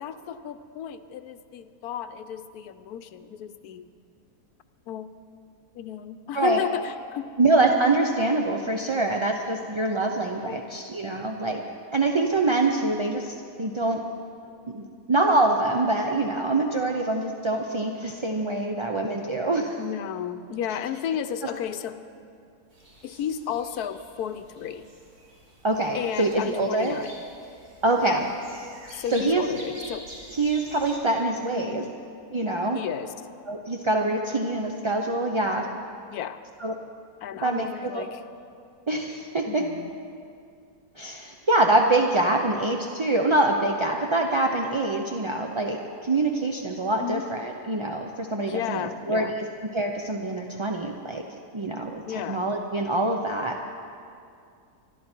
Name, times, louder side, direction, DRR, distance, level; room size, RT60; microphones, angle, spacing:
voice 1, 0.0-3.9 4.9-5.1 5.7-7.2 10.4-10.8 19.8-22.0 23.0-24.9 25.9-27.2 28.0-28.2 28.9-30.0 31.6-31.9 32.7-33.1 36.1-36.4 37.2-38.2 39.5-39.9 47.0-47.2 48.4-49.3 52.1-52.4, left 9 dB, 80° left, 11 dB, 1.2 m, -33 dB
voice 2, 7.4-11.6 11.9-14.0 14.7-19.8 25.6-27.0 27.8-28.3 29.1-29.4 30.3-31.8 32.3-32.8 33.5-35.7 36.6-36.7 37.4-37.7 37.9-38.0 38.9-39.6 41.0-49.3 49.7-51.2 51.5-53.6, right 2 dB, 35° right, 2 dB, 0.5 m, -25 dB
sound 1, 22.7-31.0, right 1 dB, 75° right, 3.3 m, -47 dB
25.5 x 12.0 x 4.4 m, 2.4 s
omnidirectional pair, 1.6 m